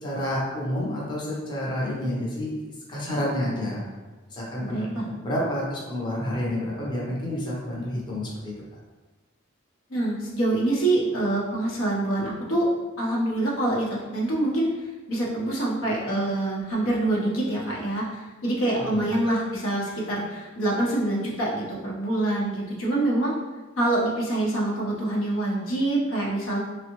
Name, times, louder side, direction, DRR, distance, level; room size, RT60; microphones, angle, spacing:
voice 1, 0.0-2.5 2.9-3.8 4.3-8.5 18.9-19.3, left 1 dB, 20° left, -5 dB, 0.6 m, -29 dB
voice 2, 4.6-5.0 9.9-12.7 13.0-14.7 15.1-23.3 23.8-26.6, right 1 dB, 80° left, -4 dB, 0.7 m, -25 dB
3.5 x 2.0 x 2.9 m, 1.2 s
head